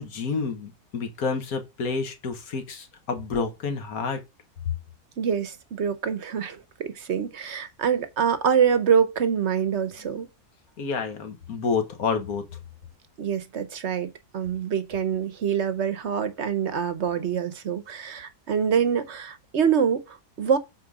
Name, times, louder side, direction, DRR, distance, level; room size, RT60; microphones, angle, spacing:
voice 1, 0.0-4.2 10.8-12.4, left 5 dB, 65° left, 1.7 m, -29 dB
voice 2, 5.2-10.3 13.2-20.6, right 7 dB, 55° right, 1.0 m, -25 dB
7.5 x 4.2 x 4.9 m
omnidirectional pair, 1.6 m